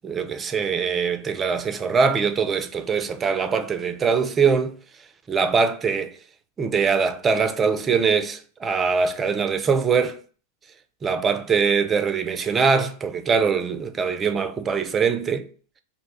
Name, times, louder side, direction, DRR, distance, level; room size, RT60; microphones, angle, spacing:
voice 1, 0.0-4.7 5.3-6.1 6.6-10.2 11.0-15.5, right 5 dB, 25° right, 0.4 m, -22 dB
2.8 x 2.2 x 4.1 m
hypercardioid pair, 95°, 0 cm